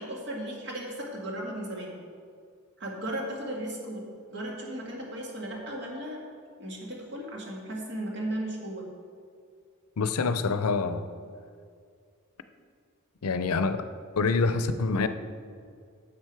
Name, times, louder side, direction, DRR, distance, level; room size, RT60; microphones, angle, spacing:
voice 1, 0.0-2.0 2.8-6.2 6.6-8.9, right 1 dB, 55° right, -1 dB, 1.9 m, -36 dB
voice 2, 10.0-11.1 13.2-13.9 14.2-15.1, left 4 dB, 75° left, 11 dB, 0.6 m, -26 dB
10.5 x 7.2 x 4.6 m, 2.2 s
head